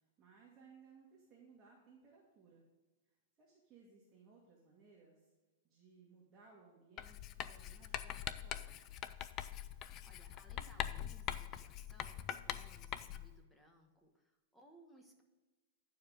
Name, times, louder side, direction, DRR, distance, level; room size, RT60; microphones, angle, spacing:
voice 1, 0.2-2.6 3.4-5.3 5.6-8.9, right 5 dB, 20° right, -5 dB, 1.9 m, -63 dB
Writing, 7.0-13.4, left 11 dB, 30° left, 0.4 m, -43 dB
voice 2, 10.0-15.2, right 1 dB, 5° left, 2 dB, 1.1 m, -64 dB
11.0 x 4.8 x 5.1 m, 1.2 s
supercardioid pair, 155°, 0 cm